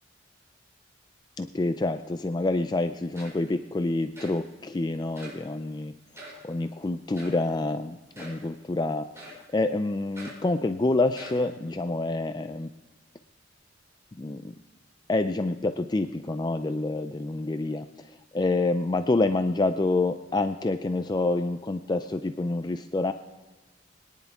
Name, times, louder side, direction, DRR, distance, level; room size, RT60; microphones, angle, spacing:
voice 1, 1.4-5.9 6.4-12.7 14.2-14.5 15.1-23.1, left 2 dB, 20° left, 9 dB, 0.4 m, -27 dB
sound 1, 2.8-2.9 3.1-3.6 4.2-4.4 5.2-5.5 6.1-6.4 7.2-7.5 8.1-8.5 9.2-9.5 10.2-10.5 11.1-11.5, equal, 15° right, 4.8 m, -44 dB
21.5 x 10.5 x 3.5 m, 1.2 s
head